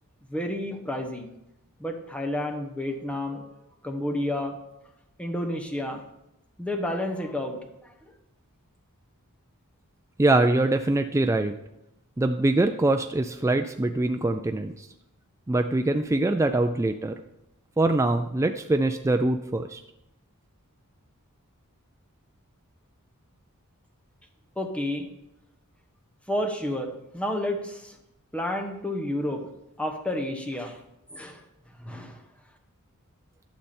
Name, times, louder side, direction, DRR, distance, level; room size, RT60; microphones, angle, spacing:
voice 1, 0.3-1.3 1.8-3.4 3.8-4.5 5.2-6.0 6.6-7.6 24.6-25.1 26.3-27.9 28.3-29.4 29.8-30.8 31.1-31.4 31.8-32.2, left 1 dB, 5° left, 3 dB, 1.0 m, -30 dB
voice 2, 10.2-11.5 12.2-14.9 15.5-17.2 17.8-19.8, right 2 dB, 15° right, 6 dB, 0.3 m, -23 dB
11.5 x 6.9 x 4.3 m, 0.87 s
head